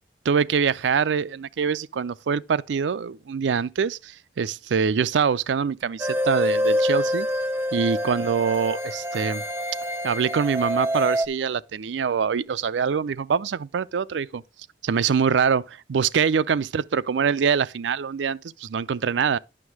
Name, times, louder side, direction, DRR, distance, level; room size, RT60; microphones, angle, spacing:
voice 1, 0.2-7.3 7.7-9.4 10.0-14.4 14.8-19.4, right 6 dB, 90° right, 0.4 m, -24 dB
sound 1, 6.0-11.3, equal, 10° right, 0.6 m, -26 dB
9.8 x 6.2 x 4.6 m
head